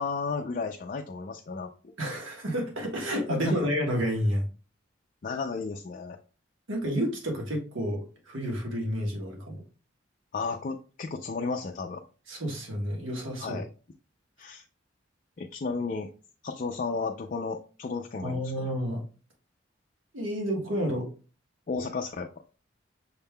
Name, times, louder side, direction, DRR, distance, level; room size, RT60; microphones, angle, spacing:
voice 1, 0.0-1.7 3.3-3.6 5.2-6.2 10.3-12.0 13.4-13.7 14.4-14.6 15.4-16.1 16.4-18.7 21.7-22.3, left 4 dB, 40° left, 4 dB, 0.4 m, -33 dB
voice 2, 2.0-4.5 6.7-9.6 12.3-13.6 18.2-19.0 20.1-21.1, equal, 85° right, 0 dB, 1.4 m, -30 dB
6.4 x 3.6 x 2.2 m, 0.36 s
head